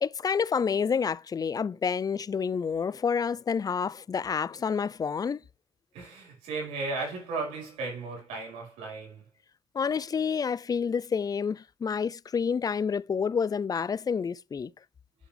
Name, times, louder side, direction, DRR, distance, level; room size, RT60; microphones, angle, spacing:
voice 1, 0.0-5.4 9.7-14.7, left 6 dB, 35° left, 0.4 m, -29 dB
voice 2, 5.9-9.2, right 3 dB, 90° right, 4.5 m, -35 dB
7.4 x 7.3 x 3.4 m
supercardioid pair, 60°, 11 cm